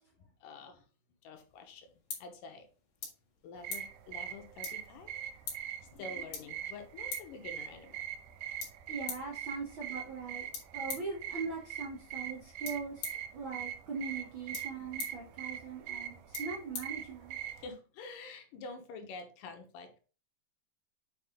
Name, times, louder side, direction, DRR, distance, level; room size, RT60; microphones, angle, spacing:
voice 1, 0.2-0.8 1.2-1.9 2.2-2.7 3.4-5.1 5.8-8.2 17.6-20.0, left 3 dB, 80° left, 6 dB, 2.6 m, -48 dB
sound 1, 1.3-17.6, left 5 dB, 50° left, 2.8 m, -48 dB
sound 2, 3.6-17.7, right 10 dB, 80° right, 2.2 m, -42 dB
voice 2, 8.9-10.5 10.7-17.4, right 4 dB, 60° right, -2 dB, 1.3 m, -41 dB
7.7 x 4.7 x 3.6 m, 0.37 s
omnidirectional pair, 4.0 m